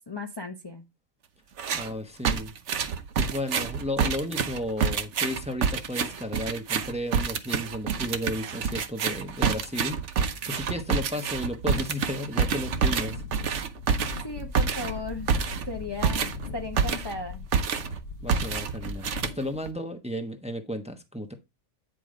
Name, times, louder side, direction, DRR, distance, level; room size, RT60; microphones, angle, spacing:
voice 1, 0.1-0.8 14.2-15.3 15.7-16.3 16.5-17.5 19.3-19.5, left 2 dB, 25° left, 0.8 m, -36 dB
sound 1, 1.6-1.9 2.3-17.2 17.5-18.0 18.3-19.7, right 6 dB, 65° right, 1.2 m, -28 dB
voice 2, 1.7-2.5 3.2-10.0 10.4-13.2 18.2-21.3, left 1 dB, 5° right, 0.9 m, -33 dB
Wind, 12.5-19.6, left 4 dB, 65° left, 1.3 m, -40 dB
9.2 x 5.1 x 3.8 m
omnidirectional pair, 1.3 m